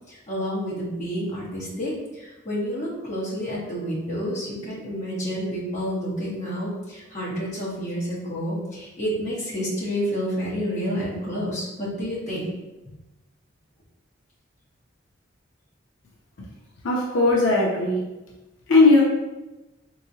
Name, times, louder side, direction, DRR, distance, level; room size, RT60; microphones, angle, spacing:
voice 1, 0.1-12.5, equal, 35° left, -7 dB, 1.3 m, -29 dB
voice 2, 16.8-18.0 18.7-19.0, left 2 dB, 85° left, -2 dB, 0.6 m, -18 dB
3.6 x 3.1 x 2.7 m, 1.1 s
head